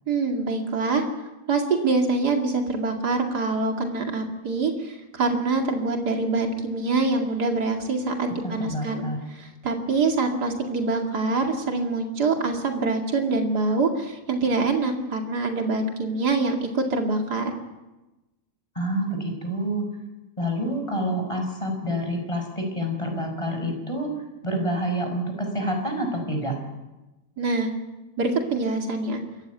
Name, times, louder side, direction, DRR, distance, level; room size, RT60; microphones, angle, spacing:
voice 1, 0.1-1.1 1.5-17.5 27.4-27.7 28.2-29.2, right 3 dB, 85° right, 3 dB, 2.9 m, -25 dB
voice 2, 8.6-9.2 18.7-19.9 20.4-24.1 24.4-26.6, equal, 20° left, 3 dB, 5.8 m, -27 dB
26.5 x 14.5 x 9.3 m, 1.0 s
omnidirectional pair, 1.7 m